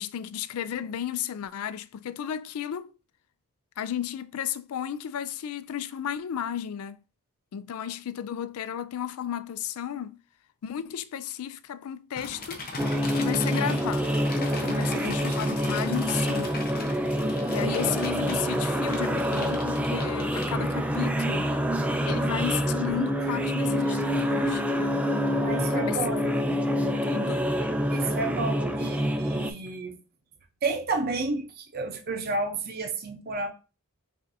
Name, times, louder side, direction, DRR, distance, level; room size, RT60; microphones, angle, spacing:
voice 1, 0.0-2.9 3.8-7.0 7.5-10.2 10.6-12.7 13.1-14.1 14.6-16.6 17.5-21.5 22.1-25.0 25.7-26.0 26.2-27.5, left 9 dB, 70° left, 0.3 m, -34 dB
sound 1, 12.2-20.9, left 3 dB, 40° left, 0.7 m, -40 dB
sound 2, 12.8-29.5, equal, 5° right, 0.3 m, -26 dB
voice 2, 14.7-15.6 25.2-26.3 27.9-30.0 30.6-33.5, right 3 dB, 45° right, 0.7 m, -32 dB
5.4 x 2.6 x 2.7 m
head